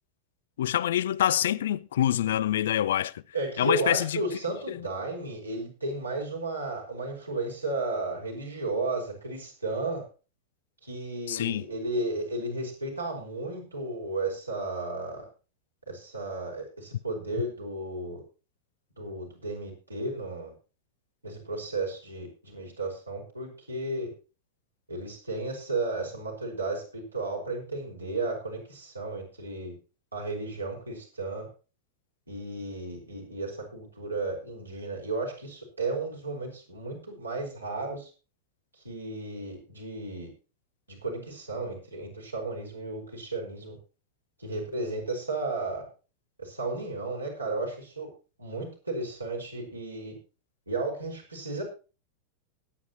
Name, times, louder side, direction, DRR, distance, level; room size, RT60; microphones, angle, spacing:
voice 1, 0.6-3.1 3.6-4.2 4.7-4.8 11.3-11.6, left 11 dB, 60° left, 0.5 m, -26 dB
voice 2, 3.3-10.1 10.8-15.2 15.9-18.2 19.0-20.5 21.2-24.1 24.9-29.7 30.1-31.5 32.3-38.1 38.8-40.3 40.9-43.8 44.4-45.9 46.4-48.1 48.4-50.1 50.7-51.6, right 2 dB, 85° right, 5.5 m, -34 dB
20.0 x 9.6 x 3.0 m
figure-of-eight pair, 90°, 0 cm